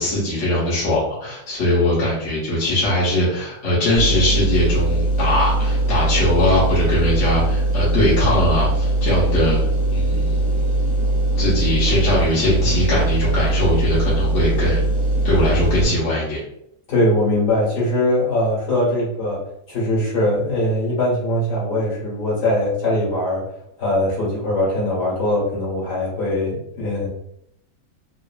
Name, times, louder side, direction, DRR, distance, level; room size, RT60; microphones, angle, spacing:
voice 1, 0.0-9.6 9.9-10.6 11.4-14.8 15.2-16.4, left 1 dB, 50° left, -8 dB, 1.2 m, -20 dB
sound 1, 3.9-15.8, right 2 dB, 65° right, 1.0 m, -20 dB
voice 2, 16.9-19.4 19.7-23.4 23.8-27.1, left 1 dB, 65° left, -7 dB, 2.0 m, -21 dB
4.0 x 2.1 x 2.3 m, 0.75 s
omnidirectional pair, 1.9 m